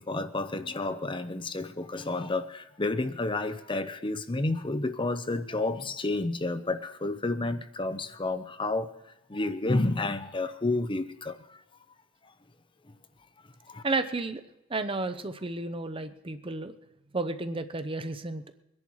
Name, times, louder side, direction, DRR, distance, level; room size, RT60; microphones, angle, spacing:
voice 1, 0.0-11.6 13.7-13.8, left 2 dB, 25° left, 11 dB, 0.7 m, -30 dB
voice 2, 13.8-14.4 14.7-16.7 17.1-18.4, right 3 dB, 25° right, 10 dB, 0.8 m, -32 dB
22.5 x 11.0 x 4.8 m, 0.92 s
head